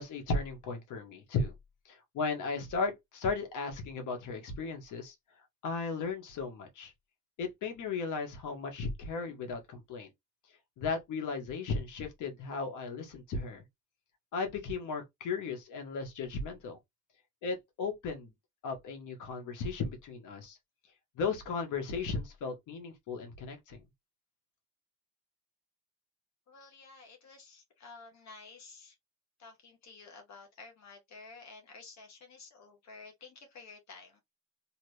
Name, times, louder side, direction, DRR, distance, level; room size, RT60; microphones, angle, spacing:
voice 1, 0.0-1.5 1.9-5.1 5.6-6.9 7.4-10.1 10.8-13.6 14.3-16.8 17.4-18.3 18.6-20.6 21.2-23.8, left 4 dB, 80° left, 1.3 m, -36 dB
voice 2, 26.5-29.0 29.4-34.2, left 4 dB, 65° left, 1.1 m, -52 dB
2.8 x 2.8 x 3.2 m
cardioid pair, 90°, 30 cm